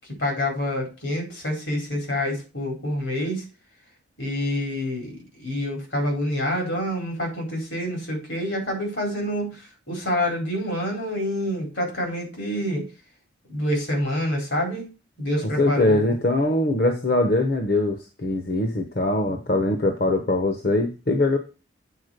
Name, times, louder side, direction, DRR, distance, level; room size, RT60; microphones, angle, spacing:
voice 1, 0.2-3.4 4.2-9.6 9.9-12.9 13.5-14.9 15.2-16.0, left 1 dB, 75° left, 1 dB, 4.6 m, -27 dB
voice 2, 15.4-21.4, left 2 dB, 50° left, 5 dB, 1.0 m, -22 dB
8.3 x 4.4 x 6.6 m, 0.31 s
head